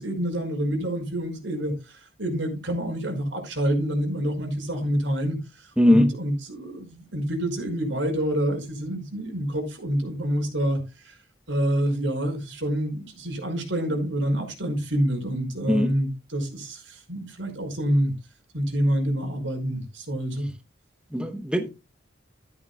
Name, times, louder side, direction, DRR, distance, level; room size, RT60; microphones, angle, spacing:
voice 1, 0.0-10.8 11.0-11.1 11.5-18.1 18.5-20.5, equal, 70° right, 5.5 m, -27 dB
voice 2, 5.8-6.1 15.7-15.9 21.1-21.7, left 1 dB, 5° right, 0.9 m, -20 dB
13.5 x 11.0 x 2.3 m
head